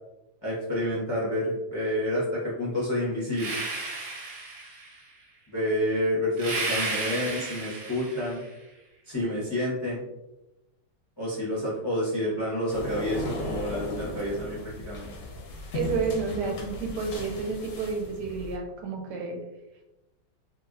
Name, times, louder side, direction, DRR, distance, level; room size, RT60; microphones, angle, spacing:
voice 1, 0.4-3.6 5.5-8.4 9.1-10.1 11.2-15.1, left 1 dB, 25° left, -6 dB, 0.5 m, -29 dB
sound 1, 3.3-5.0 6.4-8.4, right 3 dB, 60° right, 0.9 m, -33 dB
sound 2, 12.7-18.6, left 2 dB, 65° left, 0.9 m, -36 dB
voice 2, 15.7-19.4, right 4 dB, 80° right, 2 dB, 1.2 m, -30 dB
3.2 x 2.6 x 2.4 m, 0.96 s
omnidirectional pair, 1.8 m